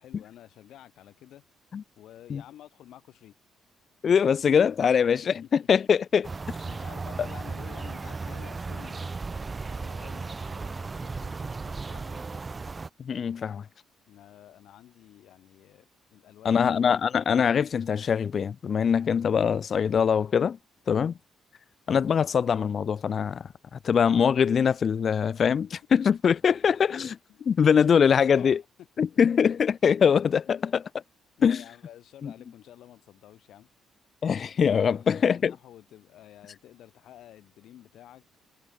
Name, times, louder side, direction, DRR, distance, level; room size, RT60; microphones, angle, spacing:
voice 1, 0.0-1.5 2.0-3.3 5.4-5.5 6.7-9.2 9.6-12.4 14.1-16.7 25.6-25.8 26.5-26.6 26.9-28.6 29.0-29.1 30.5-30.7 31.4-33.7 34.3-38.3, left 12 dB, 80° left, 3.8 m, -51 dB
voice 2, 4.0-6.3 13.0-13.7 16.5-20.6 20.9-21.1 21.9-27.1 27.5-28.6 29.0-30.8 31.4-31.6 32.2-32.3 34.2-35.5, left 7 dB, 50° left, 0.3 m, -23 dB
sound 1, 6.2-12.9, right 4 dB, 30° right, 2.8 m, -35 dB
cardioid pair, 90°, 0 cm